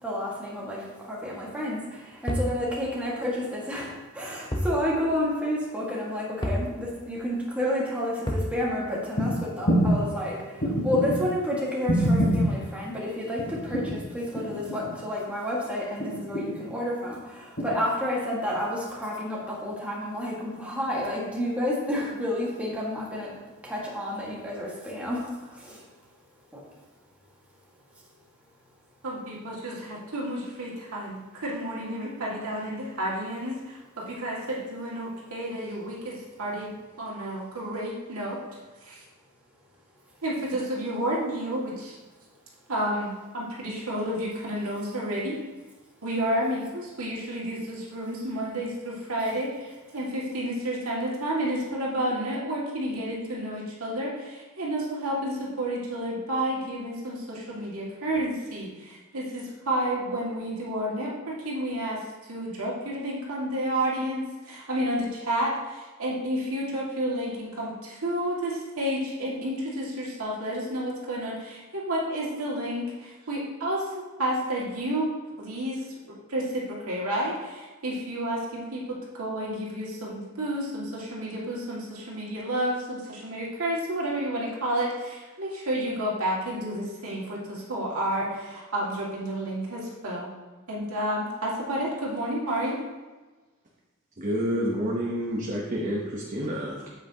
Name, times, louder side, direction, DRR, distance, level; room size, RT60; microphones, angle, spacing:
voice 1, 0.0-23.3 23.6-25.8, left 1 dB, 5° right, -5 dB, 1.8 m, -30 dB
sound 1, 2.3-2.6 4.5-4.8 5.1-5.2 6.4-6.7 8.3-8.5, equal, 20° left, 0.9 m, -28 dB
sound 2, 9.1-9.3 9.7-10.0 10.6-11.2 11.9-12.5 13.4-14.0 14.3-15.0 16.0-16.6 17.6-17.7, equal, 50° left, 2.7 m, -24 dB
voice 2, 29.0-38.4 38.8-39.0 40.2-42.0 42.7-45.4 46.0-62.0 62.3-75.1 75.4-75.8 76.3-90.3 90.7-92.8, right 1 dB, 70° right, -4 dB, 2.2 m, -31 dB
voice 3, 94.2-96.9, equal, 35° right, -3 dB, 1.0 m, -29 dB
8.6 x 8.0 x 2.9 m, 1.2 s
head